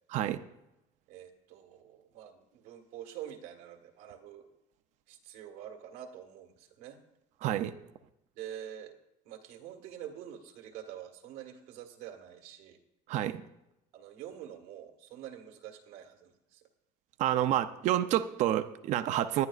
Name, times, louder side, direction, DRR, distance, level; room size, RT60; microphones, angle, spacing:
voice 1, 1.1-4.5 5.1-7.0 8.3-8.9 9.2-12.8 13.9-16.7, right 10 dB, 90° right, 3 dB, 1.6 m, -46 dB
voice 2, 7.4-7.7 13.1-13.4 17.2-19.5, right 12 dB, 50° right, 10 dB, 0.5 m, -28 dB
20.0 x 10.5 x 2.4 m, 0.87 s
cardioid pair, 170°, 16 cm